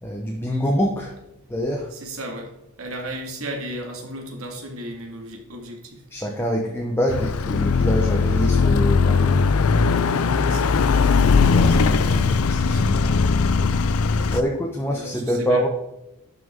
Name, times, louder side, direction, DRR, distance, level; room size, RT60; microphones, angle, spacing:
voice 1, 0.0-1.1 1.5-1.9 6.1-9.4 11.5-13.0 14.3-15.7, equal, 10° left, 0 dB, 0.9 m, -25 dB
voice 2, 1.9-2.5 2.8-6.0 10.4-11.0 12.0-13.2 14.2-14.6 14.9-15.7, right 1 dB, 75° right, 2 dB, 2.0 m, -35 dB
Car passing by / Accelerating revving vroom, 7.1-14.4, left 4 dB, 80° left, 0.5 m, -19 dB
11.5 x 5.9 x 3.7 m, 0.96 s
head